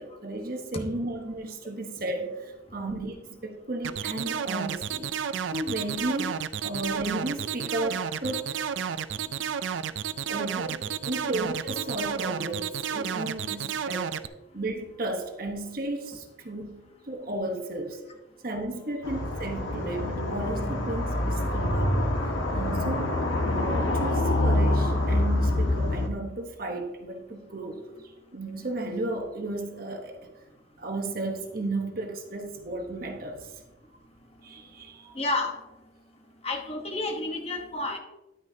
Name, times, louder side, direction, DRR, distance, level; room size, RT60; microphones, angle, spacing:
voice 1, 0.0-3.2 3.4-5.1 5.5-6.4 6.6-8.7 10.3-14.2 14.5-18.0 18.4-22.1 22.5-23.1 23.4-30.3 30.8-33.6 34.4-35.2, right 2 dB, 50° right, 4 dB, 1.1 m, -34 dB
sound 1, 3.8-14.3, right 8 dB, 75° right, 0.4 m, -31 dB
sound 2, 19.0-26.1, left 1 dB, 90° left, 1.4 m, -26 dB
voice 2, 35.1-35.6 36.4-38.0, left 2 dB, 30° left, 3 dB, 1.0 m, -30 dB
10.5 x 9.5 x 2.8 m, 1.0 s
head